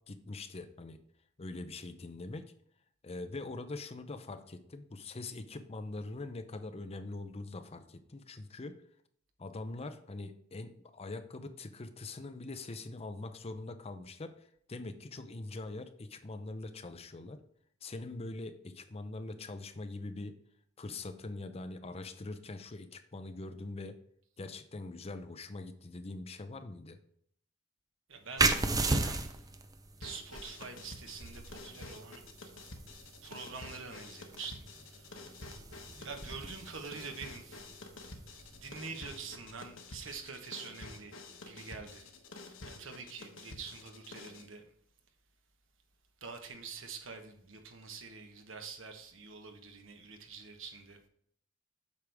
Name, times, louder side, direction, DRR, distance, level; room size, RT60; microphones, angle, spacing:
voice 1, 0.1-1.0 1.4-2.5 3.0-8.8 9.4-17.4 17.8-20.4 20.8-24.0 24.4-27.0, left 2 dB, 30° left, 0.6 m, -43 dB
voice 2, 28.1-29.4 30.0-32.2 33.2-35.5 36.0-37.7 38.5-42.1 42.6-44.6 46.2-51.0, right 5 dB, 80° right, 1.2 m, -46 dB
sound 1, 28.4-39.7, right 3 dB, 20° right, 0.5 m, -36 dB
sound 2, 30.0-44.5, left 2 dB, 85° left, 1.1 m, -50 dB
8.3 x 6.2 x 3.5 m
head